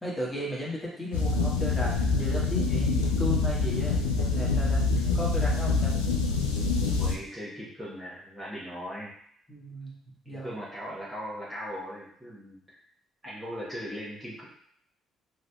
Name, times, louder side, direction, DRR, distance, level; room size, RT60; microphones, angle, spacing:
voice 1, 0.0-5.9 9.5-9.9 10.2-10.5, equal, 15° left, -5 dB, 1.5 m, -35 dB
sound 1, 1.1-7.2, left 3 dB, 80° left, 0.3 m, -26 dB
voice 2, 6.9-9.1 10.2-12.6 13.2-14.4, equal, 20° right, -6 dB, 1.1 m, -39 dB
3.6 x 3.0 x 2.3 m, 0.65 s
figure-of-eight pair, 45°, 0 cm